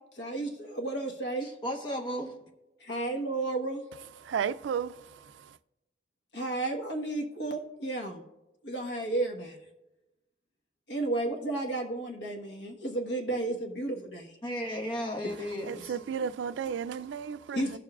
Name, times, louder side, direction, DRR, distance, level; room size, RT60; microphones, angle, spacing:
voice 1, 0.1-1.5 2.8-3.8 6.3-8.2 8.6-9.6 10.9-14.3 15.0-15.1 17.5-17.8, right 2 dB, 70° left, 1.3 m, -32 dB
voice 2, 1.6-2.3 14.4-15.9, equal, 25° left, 1.0 m, -34 dB
voice 3, 4.2-5.6 15.3-17.8, right 7 dB, 90° right, 0.3 m, -34 dB
18.0 x 6.9 x 2.4 m
head